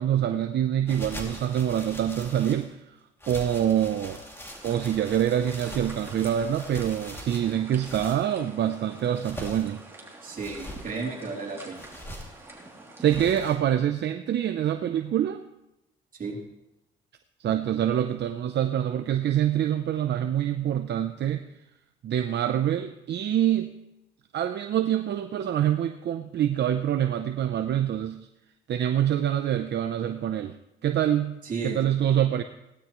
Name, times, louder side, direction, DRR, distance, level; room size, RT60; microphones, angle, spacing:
voice 1, 0.0-2.8 3.3-4.2 4.6-9.8 13.0-15.4 17.4-21.5 22.0-23.7 24.3-28.2 28.7-30.6 30.8-31.4 31.6-32.4, right 10 dB, 60° right, 7 dB, 0.6 m, -25 dB
sound 1, 0.9-2.7 3.2-8.3 9.0-9.8 10.3-10.9 11.7-12.4 13.1-13.6, equal, 10° left, 2.6 m, -41 dB
sound 2, 4.5-13.5, right 2 dB, 10° right, 2.9 m, -47 dB
voice 2, 10.2-11.8 16.2-16.4 31.4-31.8, right 4 dB, 45° right, -1 dB, 3.3 m, -33 dB
17.0 x 12.0 x 3.1 m, 0.90 s
cardioid pair, 90°, 20 cm